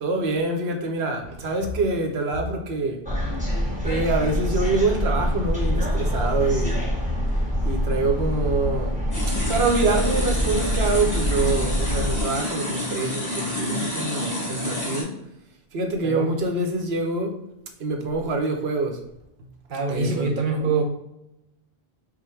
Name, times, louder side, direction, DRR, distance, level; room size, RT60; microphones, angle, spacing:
voice 1, 0.0-3.0 3.8-6.9 7.6-9.0 9.5-15.1 15.7-17.4 17.8-19.0 19.4-19.5 19.9-20.3 20.6-20.8, right 3 dB, 85° right, 1.1 m, -25 dB
sound 1, 3.1-12.2, equal, 10° right, 1.1 m, -25 dB
sound 2, 9.1-15.0, left 1 dB, 20° left, 1.2 m, -29 dB
voice 2, 16.0-16.3 19.7-20.8, right 4 dB, 55° right, 1.0 m, -24 dB
5.0 x 2.2 x 4.4 m
omnidirectional pair, 1.0 m